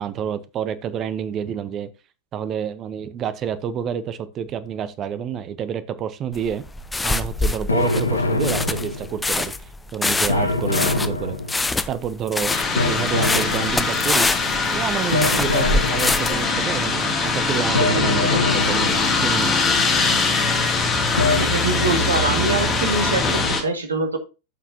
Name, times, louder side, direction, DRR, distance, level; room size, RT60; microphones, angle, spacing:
voice 1, 0.0-1.9 2.3-6.6 7.0-11.4 11.9-14.3 14.7-19.6, right 8 dB, 30° right, 0.9 m, -28 dB
sound 1, 6.3-16.5, left 2 dB, 10° left, 0.6 m, -25 dB
sound 2, 7.7-9.3 10.3-11.8 12.8-14.1 15.1-16.5 17.7-19.3 21.2-21.4, left 3 dB, 75° left, 0.8 m, -24 dB
sound 3, 12.5-23.6, left 3 dB, 25° left, 2.5 m, -22 dB
voice 2, 21.3-24.2, right 3 dB, 75° right, 1.9 m, -24 dB
13.5 x 5.9 x 2.8 m
figure-of-eight pair, 90°, 0 cm